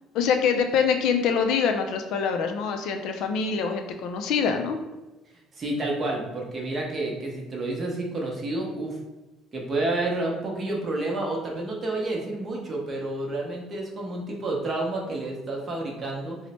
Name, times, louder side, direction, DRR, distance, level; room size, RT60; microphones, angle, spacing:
voice 1, 0.1-4.8, left 6 dB, 65° left, 5 dB, 0.3 m, -25 dB
voice 2, 5.5-9.0 9.5-16.4, right 2 dB, 30° right, -1 dB, 0.7 m, -29 dB
3.1 x 2.0 x 4.0 m, 1.1 s
cardioid pair, 150°, 0 cm